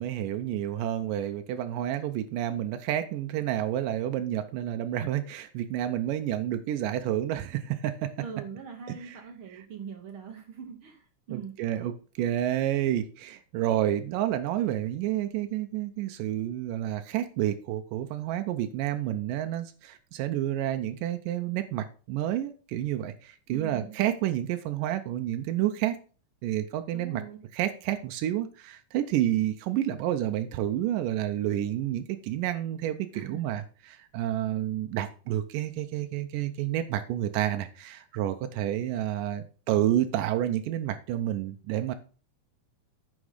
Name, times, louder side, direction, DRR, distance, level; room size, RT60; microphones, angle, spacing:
voice 1, 0.0-8.1 8.9-9.2 9.5-9.6 11.3-26.0 26.4-27.2 27.5-41.9, right 12 dB, 90° right, 8 dB, 2.3 m, -29 dB
voice 2, 8.2-11.6 23.5-24.0 26.9-27.4 33.1-33.4, right 7 dB, 70° right, 4 dB, 1.3 m, -41 dB
9.7 x 5.3 x 5.0 m, 0.37 s
omnidirectional pair, 3.7 m